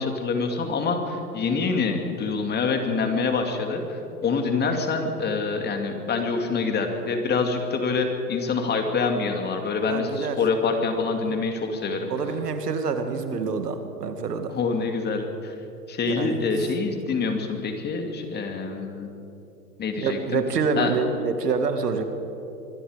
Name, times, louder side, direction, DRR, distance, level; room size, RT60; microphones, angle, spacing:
voice 1, 0.0-12.1 14.5-15.5 15.9-19.1 19.8-20.4 20.8-20.9, left 4 dB, 20° left, 5 dB, 2.5 m, -26 dB
voice 2, 9.9-10.4 11.2-11.4 12.1-14.6 16.1-16.4 20.0-22.0, right 5 dB, 75° right, 7 dB, 2.3 m, -27 dB
25.5 x 21.0 x 5.1 m, 2.9 s
hypercardioid pair, 115°, 47 cm